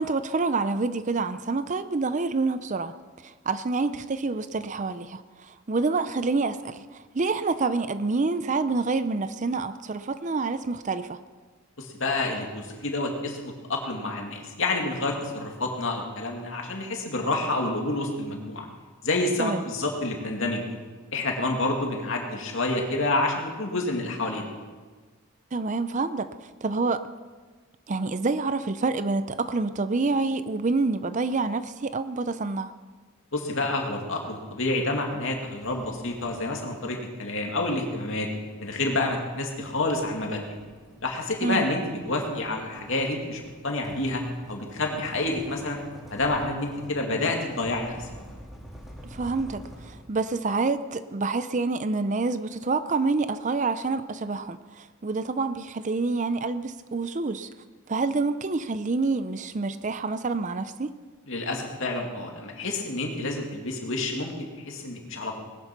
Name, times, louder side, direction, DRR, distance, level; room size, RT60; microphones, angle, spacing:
voice 1, 0.0-2.9 3.2-11.2 19.4-19.6 25.5-26.3 26.6-27.0 27.9-32.7 41.4-41.7 49.1-57.5 57.9-60.9, right 3 dB, 35° right, 12 dB, 0.5 m, -27 dB
voice 2, 11.8-18.7 19.0-20.7 21.1-24.5 33.3-38.3 38.6-40.4 41.0-44.2 44.5-45.8 46.1-48.1 61.3-65.4, left 2 dB, 60° left, 1 dB, 2.6 m, -28 dB
sound 1, 35.6-36.9 38.1-50.4, equal, ahead, 2.8 m, -47 dB
19.5 x 10.5 x 6.0 m, 1.4 s
head